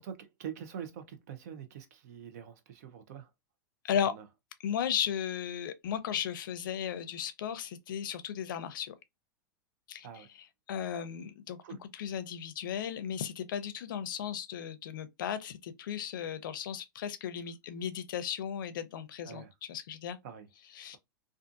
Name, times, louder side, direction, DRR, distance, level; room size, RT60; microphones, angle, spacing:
voice 1, 0.0-3.3 4.0-4.2 10.0-10.3 11.6-11.8 19.2-19.5 20.2-20.5, right 8 dB, 50° right, 0.5 m, -44 dB
voice 2, 4.6-8.9 9.9-10.1 10.7-19.4 19.7-20.2 20.8-21.0, left 9 dB, 70° left, 0.5 m, -35 dB
2.5 x 2.4 x 2.4 m
supercardioid pair, 175°, 11 cm